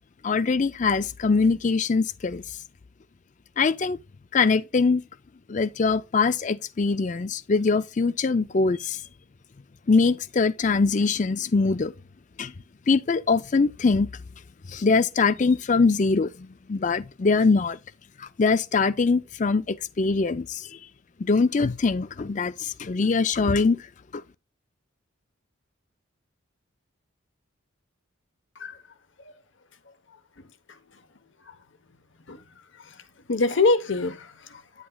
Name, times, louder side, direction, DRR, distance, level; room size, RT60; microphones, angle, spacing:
voice 1, 0.2-2.4 3.6-4.0 4.3-5.0 5.5-9.0 9.9-11.9 12.4-12.5 12.9-14.1 14.7-17.8 18.2-20.7 21.2-23.8 24.1-24.2, left 4 dB, 35° left, 0.4 m, -23 dB
voice 2, 30.4-30.8 31.4-31.6 32.3-32.4 32.7-34.9, left 3 dB, 65° left, 1.0 m, -27 dB
9.7 x 8.1 x 2.3 m
head